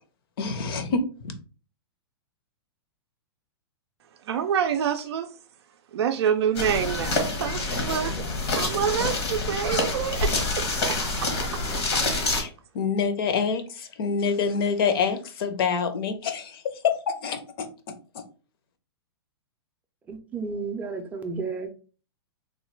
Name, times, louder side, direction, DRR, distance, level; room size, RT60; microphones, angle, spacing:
voice 1, 0.4-1.4 12.3-18.2, left 5 dB, 60° left, 0.6 m, -27 dB
voice 2, 4.3-5.3 5.9-8.1 8.5-10.6, right 8 dB, 80° right, 0.4 m, -26 dB
sound 1, 6.5-12.4, left 2 dB, 85° left, 1.1 m, -27 dB
voice 3, 20.1-21.7, right 4 dB, 10° right, 0.4 m, -32 dB
3.1 x 2.2 x 3.1 m
hypercardioid pair, 140°, 14 cm